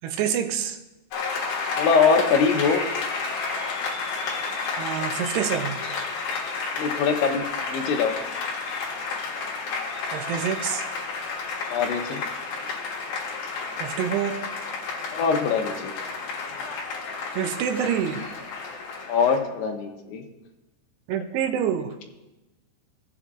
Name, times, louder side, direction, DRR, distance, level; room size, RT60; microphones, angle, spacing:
voice 1, 0.0-0.8 4.8-5.8 10.1-10.8 13.8-14.5 17.4-18.3 21.1-22.0, right 8 dB, 80° right, 7 dB, 2.5 m, -27 dB
Applause, 1.1-19.4, left 4 dB, 60° left, 2.9 m, -31 dB
voice 2, 1.8-2.8 6.7-8.1 11.7-12.2 15.1-15.9 19.1-20.2, left 5 dB, 85° left, 3 dB, 3.3 m, -23 dB
17.0 x 7.7 x 2.4 m, 1.0 s
omnidirectional pair, 5.2 m